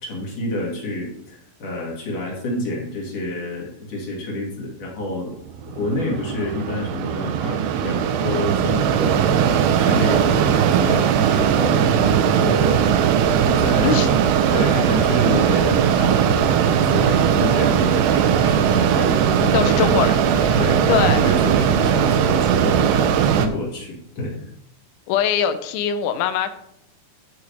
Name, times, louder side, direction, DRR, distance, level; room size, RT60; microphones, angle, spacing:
voice 1, 0.0-5.3 5.6-14.2 14.5-20.0 20.6-24.5, left 1 dB, 40° left, -2 dB, 2.9 m, -28 dB
Mechanisms, 5.5-23.5, right 8 dB, 75° right, 2.7 m, -19 dB
voice 2, 19.5-20.6 20.9-21.2 25.1-26.5, left 8 dB, 85° left, 10 dB, 3.2 m, -22 dB
16.0 x 6.9 x 3.5 m, 0.77 s
omnidirectional pair, 5.2 m